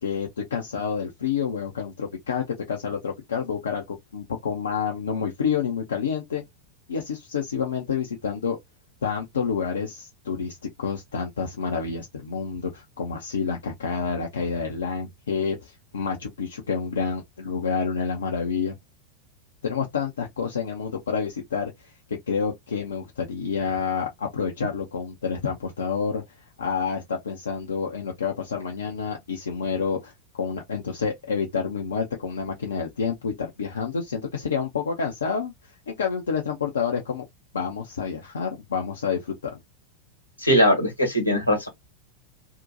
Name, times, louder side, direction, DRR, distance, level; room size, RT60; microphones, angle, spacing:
voice 1, 0.0-6.4 6.9-8.6 9.0-18.7 19.6-21.7 22.3-26.2 26.6-35.5 35.9-37.2 37.5-39.6, left 6 dB, 65° left, 0.5 m, -28 dB
voice 2, 40.4-41.7, equal, 90° left, 1.2 m, -20 dB
2.7 x 2.1 x 2.5 m
figure-of-eight pair, 90°, 0 cm